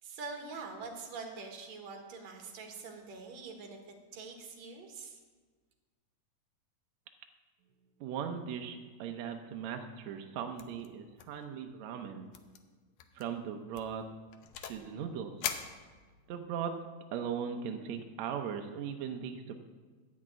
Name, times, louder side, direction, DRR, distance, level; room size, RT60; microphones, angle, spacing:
voice 1, 0.0-3.8 4.1-5.2, right 4 dB, 55° right, 2 dB, 2.4 m, -44 dB
voice 2, 8.0-12.3 13.1-14.1 14.6-15.5 16.3-16.7 17.1-19.6, right 7 dB, 85° right, 5 dB, 1.5 m, -38 dB
sound 1, 10.6-10.9 11.2-11.4 11.7-11.8 12.3-12.6 13.0-13.2 13.7-14.9 15.4-16.4, left 9 dB, 75° left, 1.9 m, -41 dB
12.5 x 6.2 x 8.8 m, 1.4 s
omnidirectional pair, 4.2 m